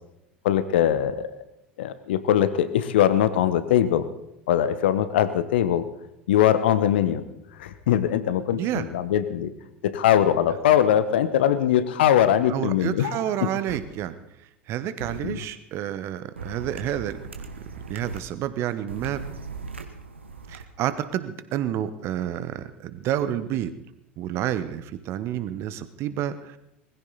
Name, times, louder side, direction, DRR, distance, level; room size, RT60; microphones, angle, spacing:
voice 1, 0.4-1.3 1.8-4.1 4.5-5.9 6.3-7.2 7.6-9.5 9.8-13.5 15.2-15.4, left 10 dB, 60° left, 13 dB, 1.1 m, -21 dB
voice 2, 8.5-8.9 12.5-14.1 14.7-17.2 17.9-19.3 20.5-23.7 24.2-26.6, right 11 dB, 45° right, 13 dB, 1.1 m, -29 dB
sound 1, 13.7-13.8 15.0-15.2 16.4-18.2 18.9-20.6, right 4 dB, 80° right, 1.3 m, -38 dB
20.5 x 15.5 x 4.1 m, 0.84 s
figure-of-eight pair, 75°, 6 cm